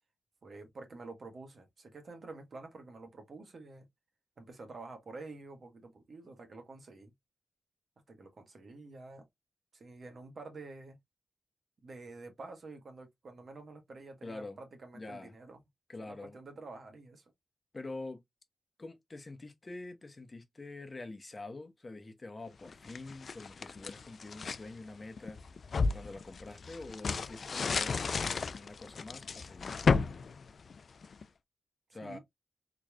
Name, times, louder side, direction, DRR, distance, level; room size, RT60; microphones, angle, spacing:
voice 1, 0.4-3.9 4.4-7.1 8.1-9.2 9.7-11.0 11.8-15.6 16.0-17.2 32.0-32.2, right 3 dB, 60° right, 1.4 m, -49 dB
voice 2, 14.2-14.6 14.9-15.3 15.9-16.4 17.7-18.2 18.8-25.4 25.9-29.8 31.9-32.2, left 2 dB, 35° left, 0.9 m, -46 dB
sound 1, 22.7-24.7 25.2-31.2, left 4 dB, 65° left, 0.3 m, -33 dB
3.9 x 3.1 x 2.4 m
cardioid pair, 60°, 0 cm